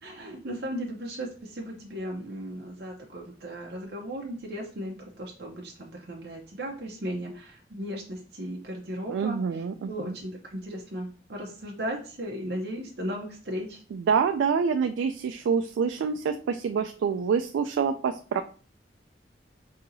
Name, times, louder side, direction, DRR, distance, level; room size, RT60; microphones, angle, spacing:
voice 1, 0.0-13.8, equal, 60° right, -1 dB, 0.7 m, -36 dB
voice 2, 9.1-10.1 13.9-18.4, right 6 dB, 90° right, 7 dB, 0.3 m, -26 dB
5.4 x 2.8 x 2.6 m, 0.40 s
head